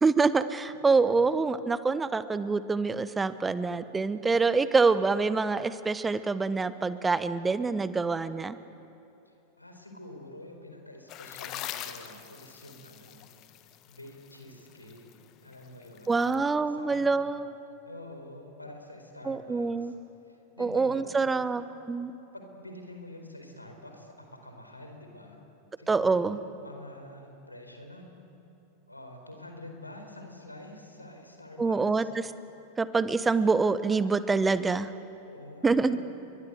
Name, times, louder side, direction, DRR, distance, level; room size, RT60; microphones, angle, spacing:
voice 1, 0.0-8.6 16.1-17.5 19.3-19.9 20.6-22.2 25.9-26.4 31.6-32.2 32.8-34.9 35.6-36.0, right 4 dB, 15° right, 14 dB, 1.0 m, -26 dB
voice 2, 9.2-13.3 13.9-15.0 15.4-16.3 16.7-17.3 17.8-19.9 20.3-21.5 22.3-25.4 25.8-28.1 28.9-32.1 35.3-36.0, left 1 dB, 85° left, 4 dB, 4.3 m, -47 dB
sound 1, 11.1-16.4, left 12 dB, 35° left, 1.4 m, -43 dB
30.0 x 23.5 x 8.0 m, 2.8 s
figure-of-eight pair, 90°, 0 cm